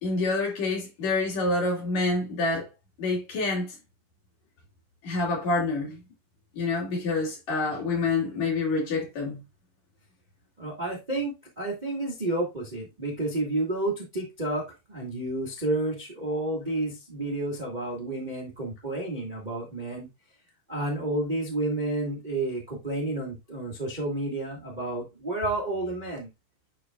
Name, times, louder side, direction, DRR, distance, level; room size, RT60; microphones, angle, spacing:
voice 1, 0.0-2.7 3.0-3.7 5.0-6.0 6.5-9.4, left 3 dB, 55° left, 3.4 m, -27 dB
voice 2, 10.6-20.1 20.7-26.3, right 2 dB, 60° right, 0.4 m, -30 dB
10.0 x 4.0 x 2.3 m
omnidirectional pair, 4.1 m